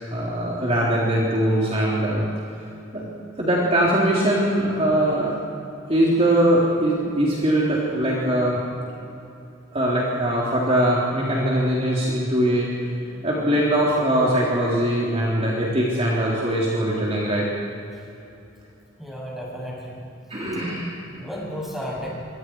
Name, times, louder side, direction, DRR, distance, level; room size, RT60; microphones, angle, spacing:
voice 1, 0.1-2.2 2.9-3.1 3.4-5.4 5.9-8.8 9.7-17.5 20.3-21.0, right 1 dB, 30° right, -5 dB, 3.7 m, -21 dB
voice 2, 19.0-19.9 20.6-20.8 21.2-22.1, equal, ahead, -4 dB, 7.4 m, -33 dB
27.5 x 25.0 x 4.8 m, 2.8 s
head